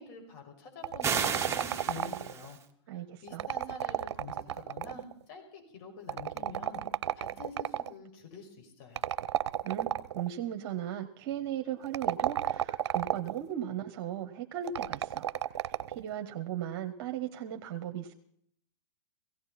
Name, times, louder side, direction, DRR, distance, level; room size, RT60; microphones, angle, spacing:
voice 1, 0.0-2.6 3.2-6.8 7.2-9.0, left 4 dB, 55° left, 3 dB, 5.8 m, -46 dB
sound 1, 0.8-2.5 3.3-5.1 6.1-7.9 9.0-10.3 11.8-13.4 14.7-16.0, right 10 dB, 75° right, 0.7 m, -32 dB
sound 2, 1.0-2.6, right 6 dB, 20° right, 1.5 m, -33 dB
voice 2, 2.9-3.4 9.6-15.3 15.9-18.1, right 10 dB, 55° right, 6 dB, 1.3 m, -37 dB
17.5 x 17.0 x 4.3 m, 0.68 s
hypercardioid pair, 120°, 15 cm